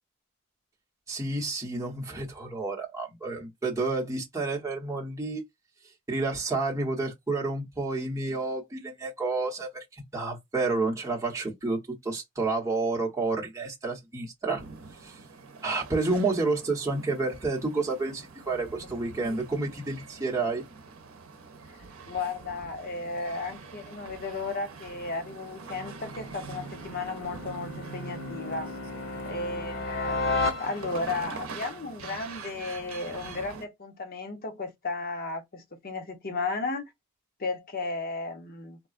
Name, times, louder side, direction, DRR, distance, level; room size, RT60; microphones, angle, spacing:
voice 1, 1.1-5.4 6.1-14.6 15.0-15.2 15.6-20.6, right 3 dB, 15° right, 1.0 m, -30 dB
sound 1, 14.6-33.7, right 4 dB, 75° right, 0.7 m, -44 dB
voice 2, 22.1-28.7 29.2-30.2 30.6-36.9 37.4-38.8, left 3 dB, 45° left, 0.8 m, -34 dB
sound 2, 24.8-31.2, left 3 dB, 75° left, 1.0 m, -34 dB
3.9 x 2.2 x 2.4 m
head